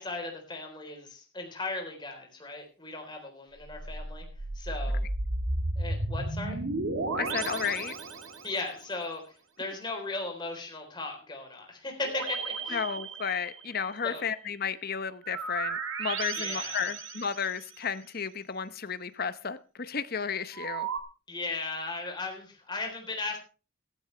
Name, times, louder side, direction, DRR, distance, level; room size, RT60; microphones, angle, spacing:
voice 1, 0.0-4.3 4.5-5.0 5.8-6.6 8.4-12.8 14.0-14.2 16.3-16.9 21.3-23.4, left 3 dB, 20° left, 2 dB, 3.8 m, -37 dB
sound 1, 3.6-8.7 12.0-13.8 15.2-17.8 20.5-21.0, right 3 dB, 65° right, 1.7 m, -34 dB
voice 2, 7.1-7.9 12.7-20.9, left 6 dB, 45° left, 13 dB, 0.8 m, -33 dB
15.0 x 14.0 x 3.3 m, 0.35 s
head